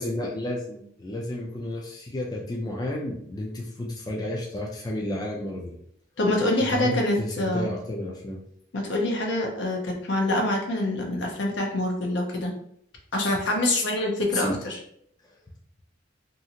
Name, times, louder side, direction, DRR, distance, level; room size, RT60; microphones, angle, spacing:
voice 1, 0.0-5.8 6.7-8.4 14.3-14.6, left 1 dB, 20° left, -2 dB, 0.4 m, -31 dB
voice 2, 6.2-7.7 8.7-12.5 13.1-14.8, left 1 dB, 65° left, 1 dB, 0.6 m, -25 dB
2.6 x 2.4 x 2.8 m, 0.68 s
head